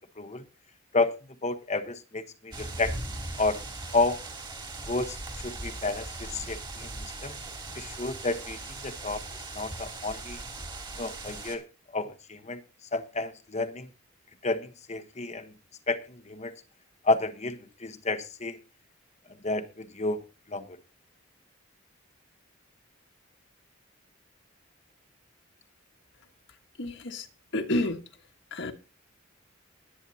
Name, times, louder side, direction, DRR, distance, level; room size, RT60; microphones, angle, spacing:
voice 1, 1.4-2.9 3.4-3.6 3.9-4.2 4.8-5.2 5.4-7.4 7.7-9.2 9.5-10.4 11.0-11.6 11.9-12.6 12.9-13.9 14.4-15.5 15.9-16.5 17.0-18.6 19.4-20.2 20.5-20.7, left 3 dB, 35° left, 1.1 m, -30 dB
sound 1, 2.5-11.6, right 2 dB, 25° right, 2.9 m, -39 dB
voice 2, 26.8-27.3 27.5-28.0 28.5-28.7, left 1 dB, 60° left, 1.6 m, -29 dB
21.5 x 9.2 x 2.8 m
head